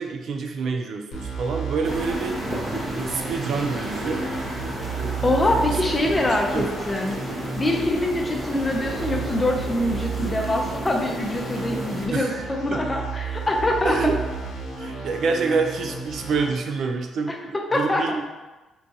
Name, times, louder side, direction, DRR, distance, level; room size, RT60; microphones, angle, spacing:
voice 1, 0.0-2.4 3.0-4.3 5.7-5.8 6.3-6.7 12.1-12.8 13.8-14.2 14.8-18.2, right 4 dB, 65° right, 4 dB, 0.3 m, -27 dB
sound 1, 1.1-16.5, right 4 dB, 85° left, 0.7 m, -33 dB
sound 2, 1.8-12.1, right 1 dB, 30° right, 0.8 m, -33 dB
voice 2, 5.2-7.2 7.6-14.0 17.3-18.0, left 1 dB, 20° left, 1 dB, 0.5 m, -24 dB
3.8 x 2.3 x 2.7 m, 1.2 s
cardioid pair, 90°, 0 cm